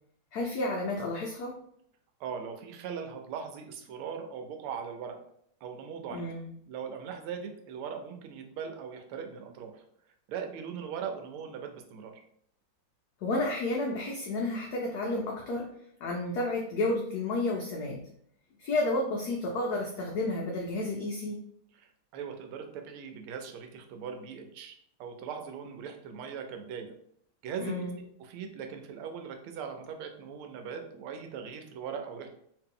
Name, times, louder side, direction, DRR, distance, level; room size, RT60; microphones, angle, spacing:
voice 1, 0.3-1.6 6.1-6.5 13.2-15.7 16.0-18.1 18.6-21.4 27.6-28.0, left 2 dB, 90° left, 0 dB, 0.8 m, -31 dB
voice 2, 2.2-5.2 5.6-6.3 6.7-9.8 10.3-12.2 21.7-24.7 25.0-26.9 27.4-32.3, right 7 dB, 80° right, 5 dB, 1.5 m, -40 dB
3.1 x 2.9 x 3.6 m, 0.68 s
omnidirectional pair, 2.3 m